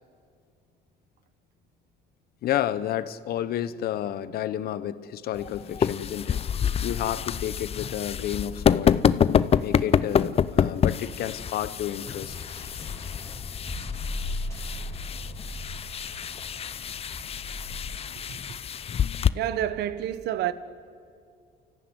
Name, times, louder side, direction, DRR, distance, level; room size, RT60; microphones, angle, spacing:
voice 1, 2.4-6.4 6.8-9.0 9.6-12.4, left 11 dB, 65° left, 1.0 m, -31 dB
sound 1, 5.3-19.3, left 8 dB, 35° left, 0.6 m, -27 dB
sound 2, 12.3-18.0, left 1 dB, 15° left, 5.4 m, -37 dB
voice 2, 19.3-20.5, right 12 dB, 75° right, 1.1 m, -29 dB
29.5 x 14.5 x 9.7 m
cardioid pair, 110°, 17 cm